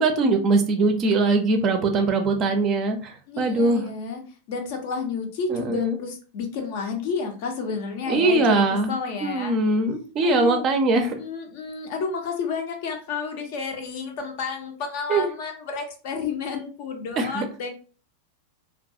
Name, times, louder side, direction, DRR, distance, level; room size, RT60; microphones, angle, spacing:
voice 1, 0.0-3.8 5.5-6.0 8.1-8.9 9.2-11.1 15.1-15.3 17.2-17.4, right 2 dB, 30° right, 5 dB, 0.4 m, -21 dB
voice 2, 3.3-4.2 4.5-8.6 8.9-9.6 10.2-10.6 11.2-17.7, left 5 dB, 50° left, 4 dB, 0.5 m, -31 dB
2.3 x 2.3 x 2.6 m, 0.38 s
figure-of-eight pair, 90°, 0 cm